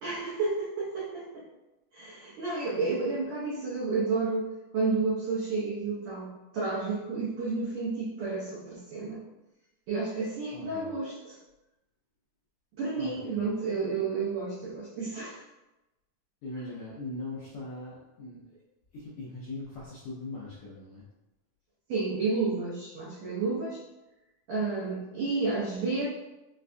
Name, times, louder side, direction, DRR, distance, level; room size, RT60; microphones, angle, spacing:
voice 1, 0.0-1.4 1.9-4.5 4.7-9.2 9.9-11.4 12.8-15.4 21.9-23.8 24.5-26.1, right 3 dB, 80° right, -7 dB, 1.5 m, -31 dB
voice 2, 10.5-10.9 13.0-13.4 16.4-18.6 18.9-21.0, left 2 dB, 80° left, -7 dB, 1.5 m, -40 dB
5.3 x 2.2 x 2.5 m, 1.0 s
omnidirectional pair, 3.9 m